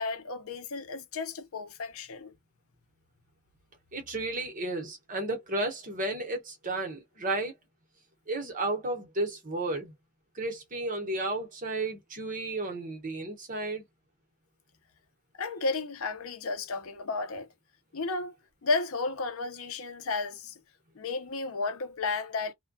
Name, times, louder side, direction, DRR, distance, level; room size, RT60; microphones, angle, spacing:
voice 1, 0.0-2.3 15.4-17.5 17.9-18.3 18.6-20.5 21.0-22.5, left 3 dB, 65° left, 0.6 m, -33 dB
voice 2, 3.9-7.5 8.3-9.9 10.3-13.8, right 2 dB, 35° right, 0.9 m, -33 dB
2.2 x 2.1 x 2.6 m
head